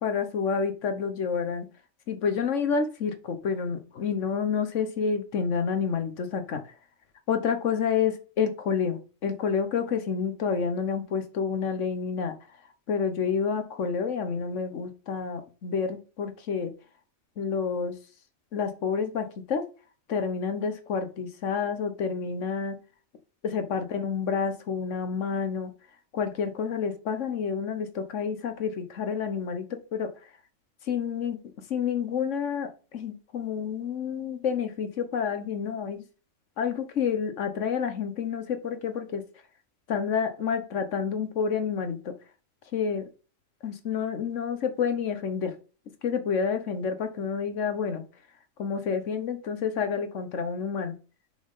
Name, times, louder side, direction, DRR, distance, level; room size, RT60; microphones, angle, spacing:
voice 1, 0.0-1.7 2.1-6.6 7.3-12.3 12.9-16.7 17.4-17.9 18.5-19.6 20.1-22.8 23.4-25.7 26.1-29.7 29.9-30.1 30.9-31.4 31.7-36.0 36.6-39.2 39.9-42.1 42.7-43.0 43.6-45.5 46.0-48.0 48.6-50.9, left 6 dB, 65° left, 8 dB, 1.3 m, -29 dB
6.0 x 5.1 x 3.6 m, 0.35 s
omnidirectional pair, 1.4 m